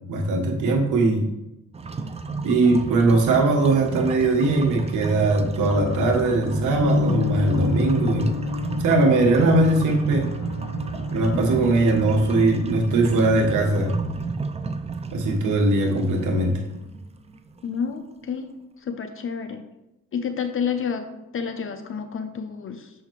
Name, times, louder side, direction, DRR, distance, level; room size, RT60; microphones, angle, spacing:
voice 1, 0.1-1.2 2.4-8.3 8.8-10.3 11.1-13.9 15.1-16.6, right 2 dB, 80° right, 2 dB, 1.3 m, -20 dB
sound 1, 1.7-17.7, right 4 dB, 20° right, 0.4 m, -32 dB
sound 2, 5.6-12.4, left 3 dB, 70° left, 2.1 m, -29 dB
voice 2, 17.6-19.7 20.1-23.0, left 6 dB, 45° left, 8 dB, 0.7 m, -30 dB
6.6 x 5.6 x 3.1 m, 0.92 s
cardioid pair, 90°, 30 cm